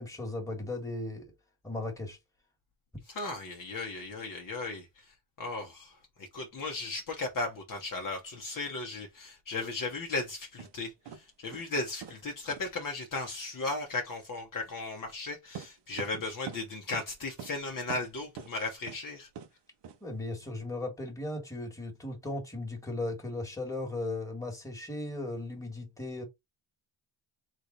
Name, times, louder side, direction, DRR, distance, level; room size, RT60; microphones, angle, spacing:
voice 1, 0.0-1.3 1.6-2.2 20.0-26.2, left 2 dB, 5° left, 1.8 m, -37 dB
voice 2, 3.1-4.9 5.4-5.9 6.2-10.9 11.4-19.3, left 3 dB, 40° left, 1.3 m, -36 dB
sound 1, 10.6-10.7 11.0-11.2 11.5-11.8 12.0-12.2 12.5-12.6 15.5-16.6 16.9-17.1 17.4-17.5 17.9-18.5 18.9-19.0 19.3-19.5 19.8-20.0, right 8 dB, 60° right, 0.9 m, -43 dB
4.0 x 3.3 x 4.1 m
cardioid pair, 150°, 48 cm